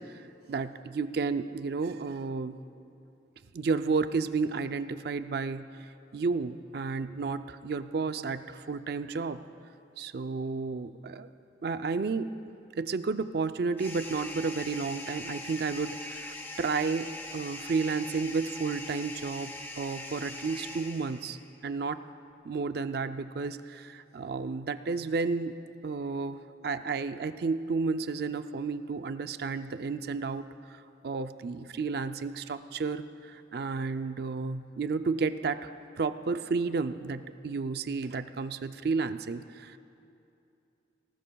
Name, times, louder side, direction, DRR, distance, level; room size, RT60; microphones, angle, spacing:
voice 1, 0.5-2.6 3.5-9.4 10.0-11.3 11.6-12.4 12.8-21.4 21.6-22.0 22.4-25.6 25.8-30.4 30.7-39.8, right 4 dB, 60° right, 10 dB, 0.4 m, -32 dB
sound 1, 13.8-21.5, left 1 dB, 10° left, 0.9 m, -42 dB
20.0 x 18.5 x 2.3 m, 2.7 s
head